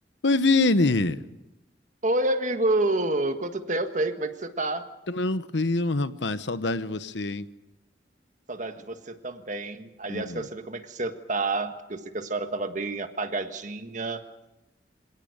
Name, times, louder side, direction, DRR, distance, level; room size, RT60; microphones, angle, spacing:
voice 1, 0.2-1.2 5.1-7.5 10.1-10.5, left 2 dB, 90° left, 13 dB, 1.0 m, -24 dB
voice 2, 2.0-4.9 8.5-14.2, right 2 dB, 45° right, 8 dB, 1.6 m, -29 dB
26.0 x 18.0 x 6.6 m, 0.95 s
head